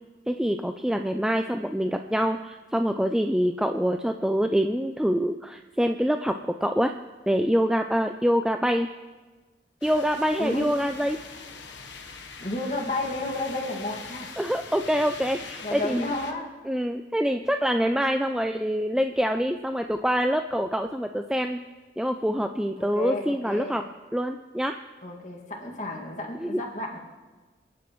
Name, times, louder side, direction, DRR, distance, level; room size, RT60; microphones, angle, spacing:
voice 1, 0.3-6.9 7.3-8.9 9.8-11.2 14.4-16.1 16.7-21.6 22.0-23.8 24.1-24.8 26.4-26.6, equal, 5° right, 6 dB, 0.3 m, -25 dB
sound 1, 9.8-16.3, left 5 dB, 85° left, 1.2 m, -42 dB
voice 2, 10.4-10.8 12.4-14.3 15.6-16.6 22.8-23.8 25.0-27.0, left 2 dB, 40° left, -1 dB, 2.1 m, -32 dB
29.5 x 10.5 x 3.1 m, 1.3 s
head